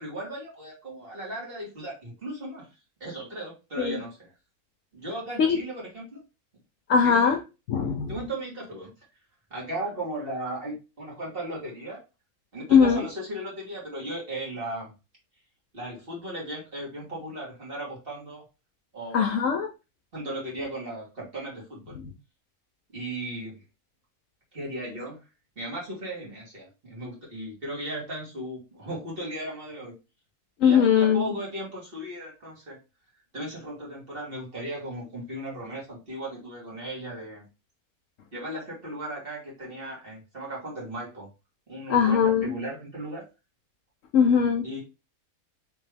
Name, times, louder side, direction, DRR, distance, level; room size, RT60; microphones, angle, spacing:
voice 1, 0.0-2.7 3.0-4.3 4.9-6.2 7.0-7.3 8.1-8.9 9.5-12.0 12.5-14.9 15.7-18.4 18.9-19.3 20.1-21.9 22.9-23.6 24.5-25.2 25.6-29.9 30.6-32.8 33.3-37.5 38.3-41.3 41.7-43.2 44.6-44.8, right 1 dB, 40° right, 1.9 m, -36 dB
voice 2, 6.9-7.4 7.7-8.2 12.7-13.0 19.1-19.7 21.9-22.1 30.6-31.3 41.9-42.6 44.1-44.7, left 7 dB, 65° left, 0.9 m, -21 dB
3.5 x 3.0 x 3.3 m
omnidirectional pair, 1.6 m